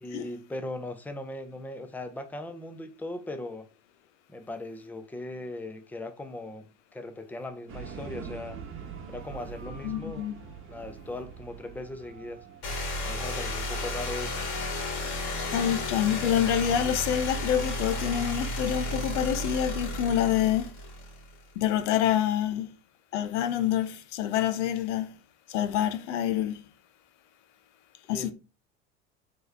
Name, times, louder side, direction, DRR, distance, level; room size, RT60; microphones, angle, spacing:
voice 1, 0.0-3.7 4.3-8.6 9.1-10.3 10.7-12.4 13.0-14.3 28.1-28.3, left 2 dB, 5° left, 0.6 m, -39 dB
sound 1, 7.7-14.5, right 6 dB, 35° right, 1.1 m, -44 dB
voice 2, 9.8-10.4 15.5-20.7 21.6-22.7 23.1-25.1 25.5-26.6 28.1-28.3, left 10 dB, 75° left, 0.7 m, -27 dB
sound 2, 12.6-21.4, left 1 dB, 60° left, 2.0 m, -33 dB
4.3 x 3.2 x 3.2 m
hypercardioid pair, 90°, 36 cm